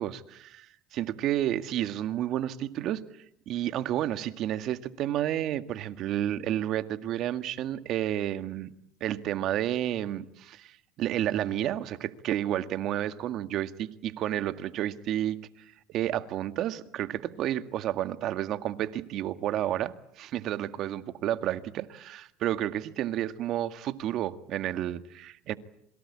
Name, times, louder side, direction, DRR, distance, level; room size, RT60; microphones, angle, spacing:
voice 1, 0.0-3.0 3.5-8.7 9.0-15.4 15.9-25.5, right 12 dB, 55° right, 1.8 m, -31 dB
27.0 x 23.0 x 8.6 m
supercardioid pair, 95°, 0 cm